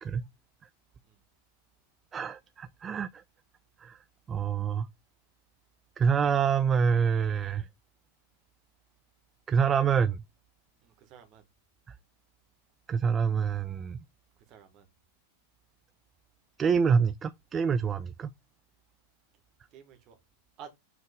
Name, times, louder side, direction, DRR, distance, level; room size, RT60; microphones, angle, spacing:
voice 1, 2.1-3.2 3.8-4.0 4.3-4.9 6.0-7.7 9.5-10.2 12.9-14.0 16.6-18.3, right 6 dB, 20° right, 0.4 m, -26 dB
voice 2, 10.8-11.4 14.5-14.9 19.7-20.2 20.6-20.7, right 8 dB, 40° right, 1.8 m, -51 dB
7.2 x 3.7 x 3.6 m
figure-of-eight pair, 90°, 0 cm